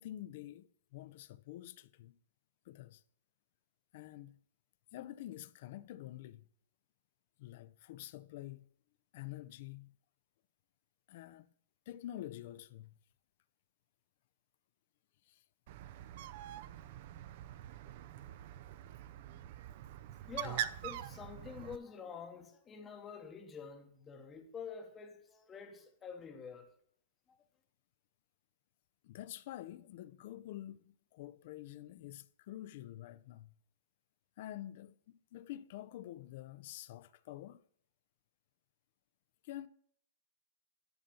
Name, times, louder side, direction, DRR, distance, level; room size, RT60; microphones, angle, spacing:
voice 1, 0.0-2.2 2.7-3.0 3.9-4.4 4.9-6.5 7.4-8.7 9.1-10.0 11.1-11.5 11.9-12.9 15.3-15.4 29.0-33.5 34.4-37.6 39.4-39.7, left 13 dB, 40° left, 0.4 m, -48 dB
Bird, 15.7-21.8, right 12 dB, 40° right, 0.4 m, -44 dB
voice 2, 20.2-26.8 27.3-27.4, left 6 dB, 10° left, 0.8 m, -48 dB
10.5 x 4.2 x 6.8 m
hypercardioid pair, 175°, 0 cm